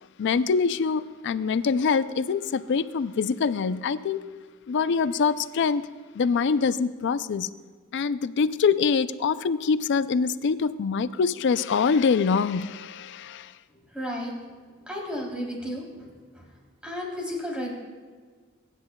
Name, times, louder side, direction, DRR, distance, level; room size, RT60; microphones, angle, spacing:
voice 1, 0.2-4.2 4.7-5.8 6.2-7.5 7.9-13.4, left 5 dB, 60° left, 0.4 m, -24 dB
voice 2, 13.9-14.3 14.9-15.8 16.3-16.4 16.8-17.7, equal, 5° right, 3.1 m, -32 dB
23.0 x 10.0 x 2.3 m
head